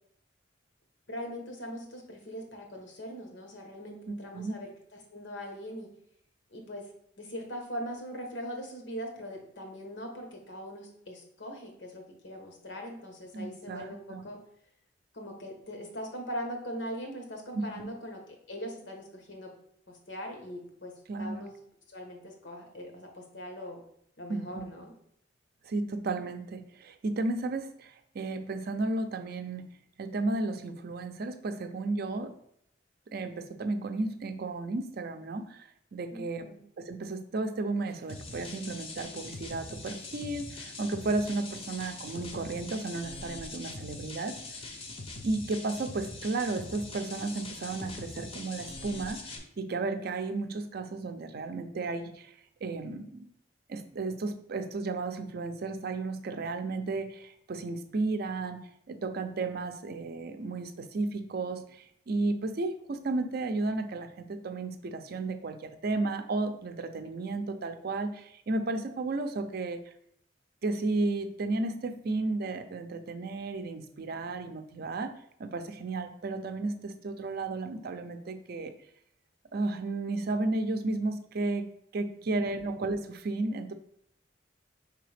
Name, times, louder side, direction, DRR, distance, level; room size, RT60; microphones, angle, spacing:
voice 1, 1.1-4.7 5.1-5.9 6.5-6.8 7.2-14.4 15.1-18.2 18.5-19.5 19.9-20.9 21.2-21.6 21.9-23.8 24.2-24.9 36.1-36.6 82.4-82.6, equal, 80° left, 2 dB, 1.1 m, -41 dB
voice 2, 4.1-4.6 13.3-14.2 17.5-17.9 21.1-21.5 24.3-24.7 25.6-29.6 30.0-32.3 33.1-36.5 36.8-44.4 45.2-52.3 52.6-53.3 53.7-58.6 58.9-69.8 70.6-75.1 75.4-78.7 79.5-81.7 81.9-83.7, right 3 dB, 55° right, 8 dB, 0.5 m, -33 dB
sound 1, 38.1-49.4, left 2 dB, 30° left, 0.6 m, -42 dB
4.7 x 3.4 x 3.3 m, 0.70 s
head